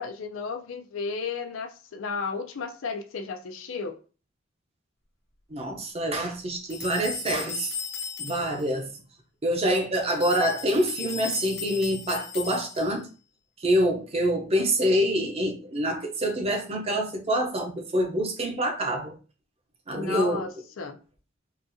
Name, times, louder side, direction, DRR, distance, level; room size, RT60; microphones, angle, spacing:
voice 1, 0.0-4.0 19.9-21.0, left 4 dB, 90° left, 0.5 m, -33 dB
voice 2, 5.5-7.7 8.2-8.9 9.4-13.1 13.6-19.1 19.9-20.4, equal, 30° right, 0.6 m, -26 dB
sound 1, 6.7-8.7 10.1-13.0, left 6 dB, 55° left, 0.9 m, -36 dB
3.9 x 2.4 x 2.6 m
head